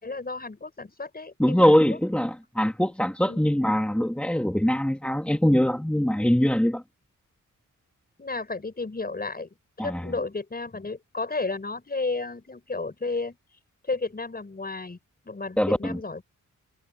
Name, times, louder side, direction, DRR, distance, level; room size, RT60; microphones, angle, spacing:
voice 1, 0.0-2.0 3.3-3.5 8.2-9.5 9.8-13.4 13.8-15.0 15.2-16.2, left 3 dB, 30° left, 6.6 m, -32 dB
voice 2, 1.4-6.8 9.8-10.1 15.6-16.0, equal, 5° left, 2.0 m, -22 dB
wide cardioid pair, 120°, 31 cm